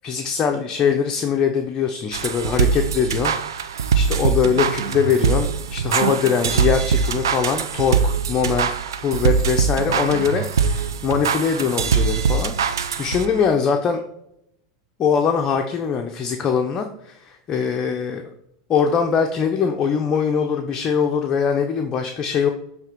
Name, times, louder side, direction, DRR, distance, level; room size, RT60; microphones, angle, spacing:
voice 1, 0.0-14.0 15.0-18.3 18.7-22.5, left 6 dB, 30° left, 4 dB, 0.7 m, -22 dB
sound 1, 2.1-13.5, right 6 dB, 90° right, 0.5 m, -22 dB
6.8 x 3.4 x 4.5 m, 0.78 s
hypercardioid pair, 110°, 2 cm